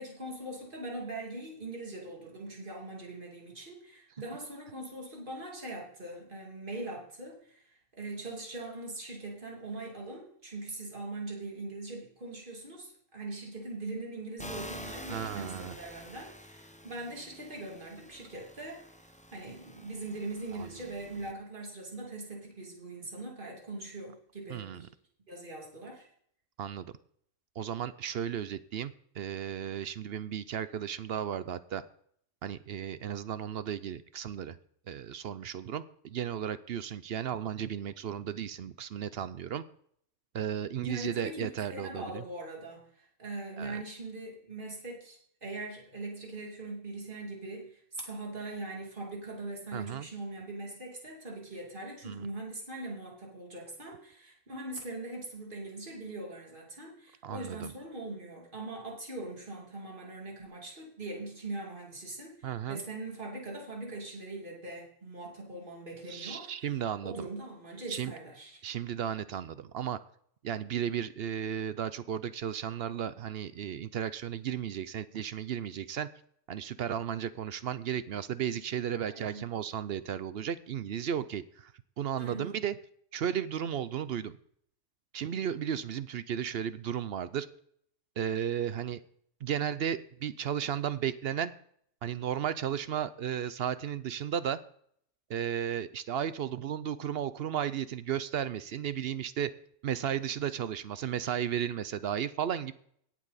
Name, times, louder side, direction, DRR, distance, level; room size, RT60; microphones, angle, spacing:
voice 1, 0.0-18.9 19.3-24.9 25.3-26.1 40.8-66.5 67.0-68.6 79.0-79.4 82.2-82.5, right 2 dB, 40° right, -1 dB, 2.8 m, -41 dB
sound 1, 14.4-21.3, equal, 10° left, 0.6 m, -48 dB
voice 2, 15.1-15.8 20.5-20.7 24.5-24.8 26.6-26.9 27.6-31.8 32.4-34.6 34.9-39.6 40.3-42.2 43.6-43.8 49.7-50.1 52.1-52.2 57.2-57.7 62.4-62.8 66.1-67.1 67.9-68.1 68.6-70.0 70.4-76.1 76.5-81.7 82.0-82.8 83.1-84.4 85.1-87.5 88.2-89.0 89.4-91.5 92.0-94.6 95.3-99.5 99.8-102.7, right 9 dB, 60° right, 14 dB, 0.7 m, -34 dB
17.5 x 7.5 x 4.1 m, 0.65 s
omnidirectional pair, 1.3 m